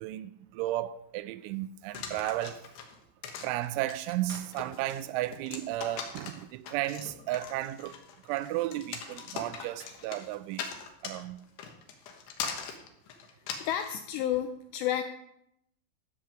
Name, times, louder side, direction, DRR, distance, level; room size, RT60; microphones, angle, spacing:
voice 1, 0.0-2.7 3.4-8.0 8.3-10.7 11.0-11.4, right 15 dB, 85° right, 2.9 m, -34 dB
sound 1, 1.9-14.0, left 6 dB, 70° left, 3.1 m, -41 dB
voice 2, 13.6-15.0, left 11 dB, 90° left, 2.5 m, -31 dB
13.5 x 5.5 x 7.6 m
omnidirectional pair, 5.5 m